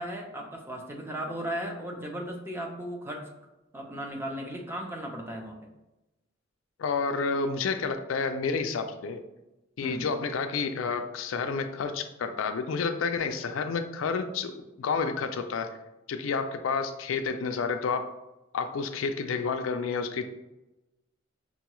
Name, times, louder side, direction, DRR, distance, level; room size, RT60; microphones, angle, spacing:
voice 1, 0.0-3.3 3.7-5.6 9.8-10.1, equal, 10° right, 1 dB, 0.6 m, -36 dB
voice 2, 6.8-9.2 9.8-15.8 16.1-18.1 18.5-20.2, left 5 dB, 85° left, 8 dB, 0.4 m, -30 dB
5.5 x 2.3 x 3.0 m, 0.98 s
head